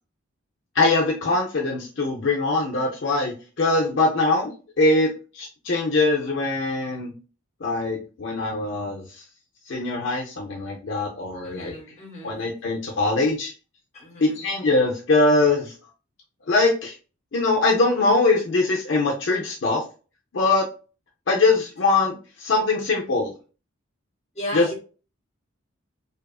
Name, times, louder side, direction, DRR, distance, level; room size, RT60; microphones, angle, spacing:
voice 1, 0.7-4.5 4.8-7.1 7.6-9.2 9.7-11.8 12.2-13.5 14.2-15.7 16.5-16.9 17.3-19.8 20.3-20.7 21.3-23.3 24.5-24.7, left 3 dB, 60° left, -2 dB, 0.5 m, -22 dB
voice 2, 11.4-12.4 13.9-14.4 24.3-24.8, equal, 35° left, 1 dB, 0.9 m, -35 dB
2.8 x 2.3 x 2.3 m, 0.35 s
head